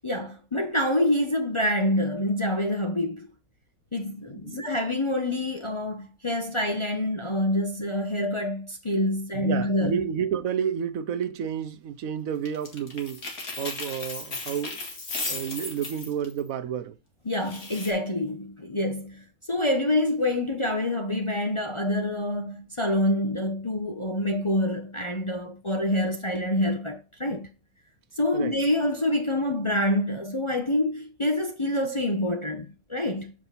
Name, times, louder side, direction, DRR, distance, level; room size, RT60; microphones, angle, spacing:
voice 1, 0.0-3.3 3.9-10.0 17.2-27.5 28.2-33.3, left 1 dB, 25° left, 0.7 m, -26 dB
voice 2, 9.3-13.2 13.6-14.8 15.3-16.9 28.3-28.6, right 8 dB, 70° right, 1.1 m, -30 dB
sound 1, 12.5-16.4 17.4-17.9, left 3 dB, 75° left, 2.4 m, -35 dB
7.6 x 4.9 x 4.1 m
omnidirectional pair, 1.5 m